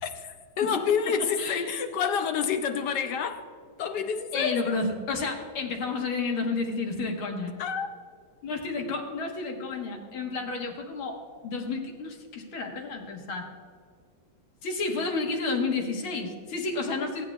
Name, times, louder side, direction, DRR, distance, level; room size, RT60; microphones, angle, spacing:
voice 1, 0.0-3.4 3.8-4.6 7.6-7.9, left 7 dB, 70° left, 1.1 m, -28 dB
voice 2, 4.3-7.5 8.4-13.5 14.6-17.3, left 3 dB, 85° left, 2.2 m, -31 dB
17.0 x 9.2 x 2.4 m
omnidirectional pair, 2.2 m